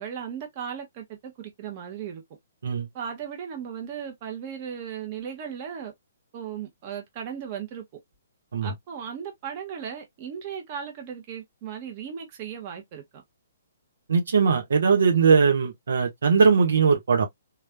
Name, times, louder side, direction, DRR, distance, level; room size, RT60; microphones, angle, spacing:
voice 1, 0.0-2.2 2.9-5.9 6.3-7.8 8.6-13.2, right 8 dB, 40° right, 1.5 m, -36 dB
voice 2, 14.1-17.2, right 5 dB, 75° right, 1.4 m, -20 dB
3.8 x 3.1 x 2.2 m
hypercardioid pair, 140°, 0 cm